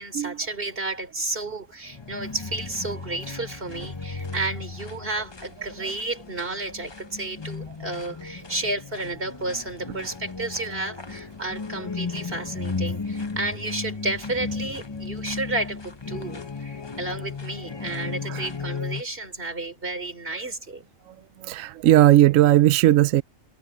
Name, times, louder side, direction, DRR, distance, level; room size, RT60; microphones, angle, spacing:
voice 1, 0.0-20.8, right 2 dB, 35° right, 4.0 m, -32 dB
sound 1, 1.9-19.0, left 4 dB, 25° left, 0.7 m, -35 dB
voice 2, 21.4-23.2, right 14 dB, 70° right, 0.8 m, -17 dB
omnidirectional pair, 1.6 m